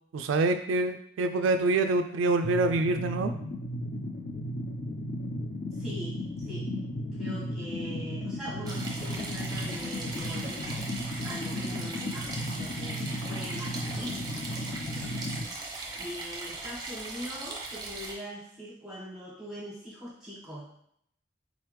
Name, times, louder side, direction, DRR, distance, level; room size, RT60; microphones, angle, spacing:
voice 1, 0.1-3.3, right 2 dB, 90° right, 7 dB, 0.3 m, -26 dB
sound 1, 2.4-15.4, left 1 dB, 45° left, 0.3 m, -35 dB
voice 2, 5.8-6.7 7.1-10.8 11.2-14.2 15.9-20.7, equal, ahead, -6 dB, 1.3 m, -41 dB
sound 2, 8.6-18.1, right 2 dB, 20° right, 0.7 m, -39 dB
3.9 x 3.2 x 3.1 m, 0.71 s
head